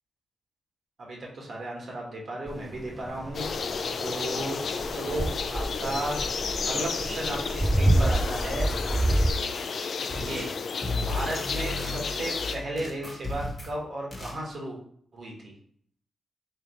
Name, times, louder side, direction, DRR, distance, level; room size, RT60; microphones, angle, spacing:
voice 1, 1.0-3.7 4.0-8.7 10.0-10.5 11.1-14.8 15.1-15.5, right 1 dB, 60° right, -2 dB, 1.5 m, -35 dB
sound 1, 2.5-9.3, right 1 dB, 10° right, 0.3 m, -27 dB
sound 2, 3.3-12.6, left 5 dB, 65° left, 0.4 m, -32 dB
sound 3, 10.1-10.5 10.8-13.8 14.1-14.4, left 2 dB, 35° left, 1.2 m, -34 dB
3.3 x 2.8 x 4.2 m, 0.63 s
cardioid pair, 60°, 0 cm